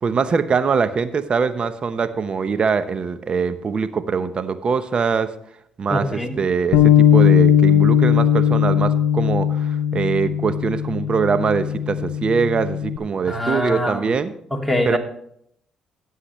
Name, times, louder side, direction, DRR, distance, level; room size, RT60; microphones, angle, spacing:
voice 1, 0.0-5.3 5.8-14.3 14.9-15.0, right 5 dB, 50° right, 12 dB, 0.9 m, -22 dB
voice 2, 5.9-6.4 13.3-14.0 14.5-15.0, left 1 dB, ahead, 1 dB, 2.5 m, -23 dB
Bass guitar, 6.7-13.0, left 9 dB, 80° left, 0.6 m, -18 dB
16.0 x 7.6 x 3.2 m, 0.70 s
supercardioid pair, 55°, 2 cm